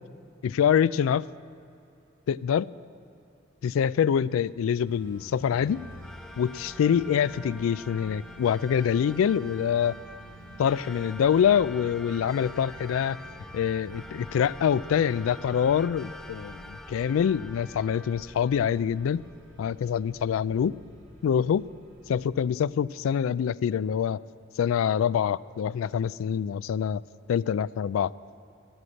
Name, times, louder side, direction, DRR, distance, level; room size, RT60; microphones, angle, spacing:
voice 1, 0.4-1.3 2.3-2.7 3.6-5.8 6.4-9.9 10.6-13.2 13.5-19.2 19.6-20.8 21.2-21.6 22.1-24.2 24.6-27.0 27.3-28.1, left 8 dB, 90° left, 20 dB, 0.3 m, -25 dB
sound 1, 4.8-22.3, equal, 85° right, 3.5 m, -48 dB
sound 2, 5.7-19.5, left 1 dB, ahead, 0.4 m, -46 dB
12.5 x 7.9 x 9.7 m, 2.6 s
head